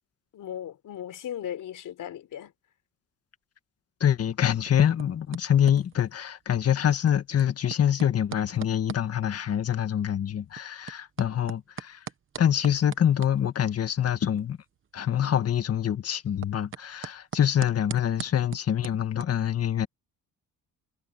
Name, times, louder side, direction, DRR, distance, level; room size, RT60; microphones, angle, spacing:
voice 1, 0.3-2.5, left 10 dB, 60° left, 4.4 m, -37 dB
voice 2, 4.0-12.0 12.4-14.6 14.9-19.9, left 9 dB, 40° left, 1.7 m, -25 dB
sound 1, 4.1-19.2, right 8 dB, 35° right, 1.0 m, -44 dB
cardioid pair, 125°, 35 cm